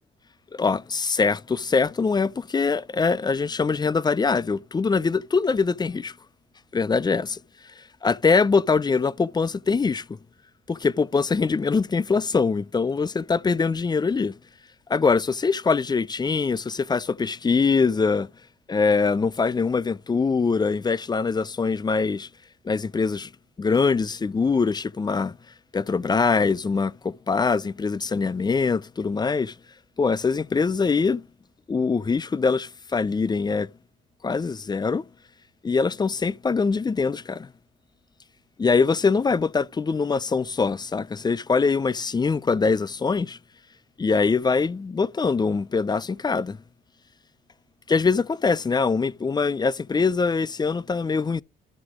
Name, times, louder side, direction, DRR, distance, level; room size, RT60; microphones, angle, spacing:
voice 1, 0.5-6.1 6.7-7.4 8.0-10.2 10.7-14.3 14.9-18.3 18.7-22.3 22.6-23.3 23.6-25.4 25.7-29.5 30.0-31.2 31.7-33.7 34.2-35.0 35.6-37.5 38.6-43.4 44.0-46.6 47.9-51.4, left 4 dB, 20° left, 0.4 m, -23 dB
13.0 x 5.8 x 3.6 m
cardioid pair, 90°, 20 cm